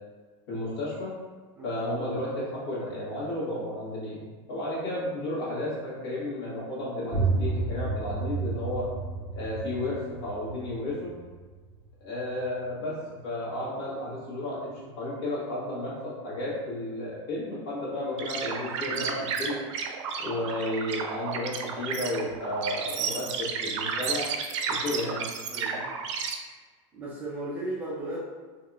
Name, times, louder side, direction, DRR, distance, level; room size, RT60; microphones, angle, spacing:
voice 1, 0.5-1.1 1.6-8.9 9.3-11.1 12.0-19.6 20.2-24.2 24.7-25.3, left 1 dB, 65° left, -7 dB, 1.4 m, -33 dB
sound 1, 7.1-12.7, right 4 dB, 15° left, 1.4 m, -32 dB
sound 2, 18.2-26.3, right 6 dB, 85° right, 0.5 m, -32 dB
voice 2, 24.8-25.9 26.9-28.2, right 1 dB, 10° right, -7 dB, 0.4 m, -37 dB
3.8 x 2.7 x 2.3 m, 1.4 s
supercardioid pair, 175°, 15 cm